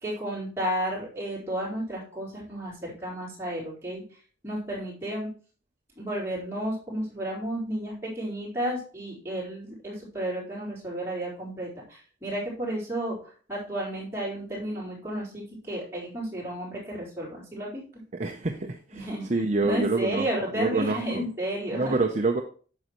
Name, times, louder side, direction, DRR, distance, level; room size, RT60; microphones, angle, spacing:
voice 1, 0.0-4.0 4.4-5.3 6.0-17.8 18.9-21.9, right 1 dB, 15° right, -6 dB, 3.8 m, -32 dB
voice 2, 18.2-20.3 20.5-21.3 21.7-22.4, right 3 dB, 35° right, 3 dB, 0.6 m, -27 dB
9.3 x 6.5 x 3.0 m, 0.40 s
head